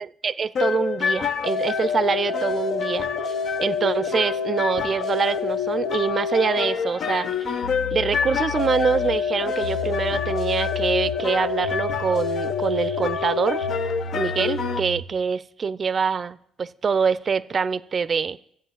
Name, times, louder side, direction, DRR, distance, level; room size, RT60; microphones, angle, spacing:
voice 1, 0.0-3.1 3.6-7.6 7.9-13.7 14.1-18.4, right 5 dB, 45° right, 17 dB, 0.5 m, -25 dB
sound 1, 0.5-14.8, left 6 dB, 65° left, 0.8 m, -26 dB
sound 2, 7.6-15.1, left 5 dB, 90° left, 1.0 m, -35 dB
11.5 x 7.9 x 7.4 m, 0.72 s
supercardioid pair, 60°, 0 cm